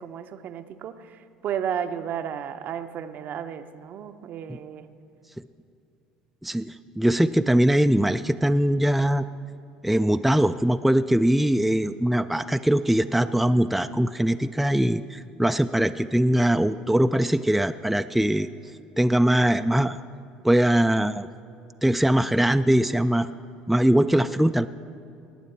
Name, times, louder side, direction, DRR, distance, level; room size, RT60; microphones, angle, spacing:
voice 1, 0.0-4.9, right 8 dB, 50° right, 10 dB, 0.6 m, -33 dB
voice 2, 6.4-9.3 9.8-18.5 19.0-20.0 20.4-21.3 21.8-23.3 23.7-24.7, right 1 dB, 5° right, 10 dB, 0.3 m, -21 dB
18.5 x 9.0 x 4.4 m, 2.5 s
hypercardioid pair, 65°, 4 cm